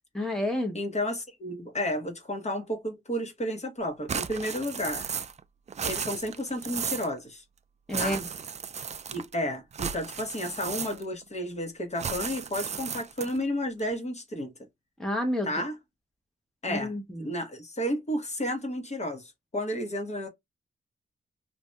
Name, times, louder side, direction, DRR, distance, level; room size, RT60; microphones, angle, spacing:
voice 1, 0.1-0.8 7.9-8.2 15.0-15.5 16.7-17.3, left 1 dB, 5° left, 1.0 m, -30 dB
voice 2, 0.7-5.1 5.8-7.4 8.0-8.2 9.1-14.5 15.4-15.8 16.6-16.9 17.2-20.3, equal, 35° left, 1.1 m, -32 dB
sound 1, 4.1-5.4 5.7-7.1 7.9-9.4 9.7-11.2 12.0-13.4, right 6 dB, 35° right, 0.4 m, -35 dB
2.7 x 2.5 x 3.3 m
cardioid pair, 75°, 19 cm